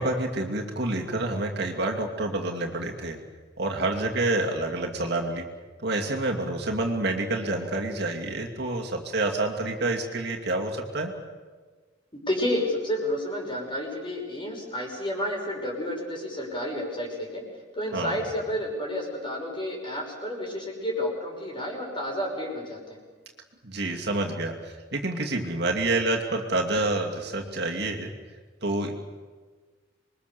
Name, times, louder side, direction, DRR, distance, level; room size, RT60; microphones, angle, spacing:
voice 1, 0.0-3.2 3.6-5.5 5.8-11.1 17.9-18.2 23.6-28.1 28.6-28.9, right 2 dB, 60° right, 1 dB, 2.6 m, -28 dB
voice 2, 12.1-17.4 17.7-23.0, left 1 dB, 25° left, 0 dB, 6.0 m, -30 dB
27.0 x 22.5 x 7.0 m, 1.4 s
head